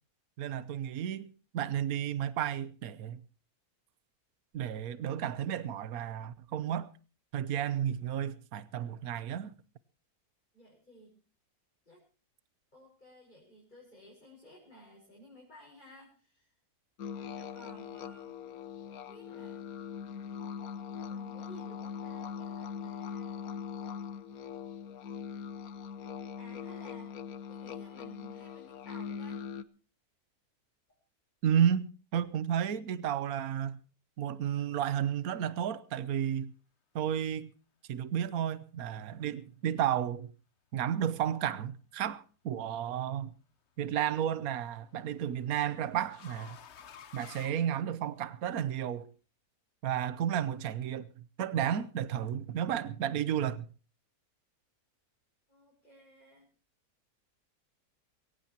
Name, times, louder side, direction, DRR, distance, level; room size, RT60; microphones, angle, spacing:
voice 1, 0.4-1.3 1.5-3.2 4.5-6.9 7.3-9.5 31.4-31.9 32.1-33.8 34.2-36.5 36.9-37.5 37.9-40.3 40.7-43.3 43.8-46.6 47.1-49.1 49.8-51.1 51.4-53.6, right 9 dB, 70° right, 1.4 m, -32 dB
voice 2, 10.5-11.2 11.8-12.0 12.7-16.5 17.2-18.3 18.9-19.7 21.1-23.6 26.4-27.2 27.5-29.4 55.5-56.5, equal, 30° left, 6.3 m, -56 dB
sound 1, 17.0-29.6, left 7 dB, 70° left, 1.4 m, -41 dB
sound 2, 42.5-43.0 44.4-48.4, left 8 dB, 50° left, 1.1 m, -53 dB
22.0 x 18.0 x 2.9 m
omnidirectional pair, 1.6 m